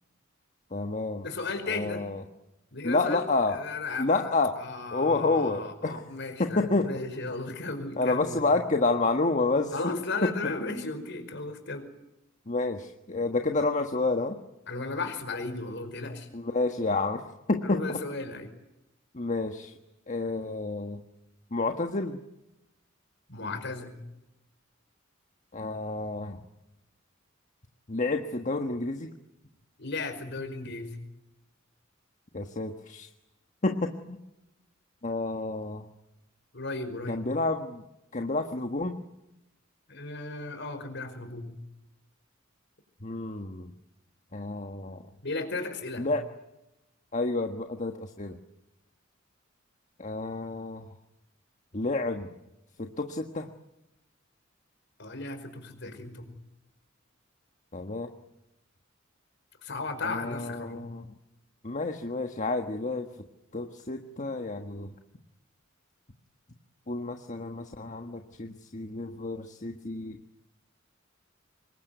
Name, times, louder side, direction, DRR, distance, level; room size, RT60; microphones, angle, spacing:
voice 1, 0.7-1.3 1.6-2.2 2.8-3.6 4.0-4.5 4.9-6.0 6.4-6.9 8.0-9.7 10.2-10.3 12.5-14.4 16.3-18.0 19.1-19.7 20.1-21.0 21.5-22.2 25.5-26.4 27.9-29.1 32.3-33.1 33.6-34.2 35.0-35.8 37.1-37.8 38.1-39.0 43.0-43.7 44.3-45.0 46.0-46.2 47.1-48.4 50.0-50.8 51.7-52.3 52.8-53.5 57.7-58.1 60.0-61.1 61.6-63.1 63.5-64.9 66.9-70.2, left 3 dB, 40° left, 4 dB, 1.5 m, -29 dB
voice 2, 1.2-2.0 2.7-3.2 3.5-8.4 9.7-11.9 14.7-16.3 17.6-18.5 23.3-24.0 29.8-31.0 36.5-37.2 39.9-41.6 45.2-46.1 55.0-56.3 59.6-60.9, left 3 dB, 60° left, 8 dB, 5.1 m, -35 dB
26.0 x 22.0 x 9.4 m, 0.93 s
head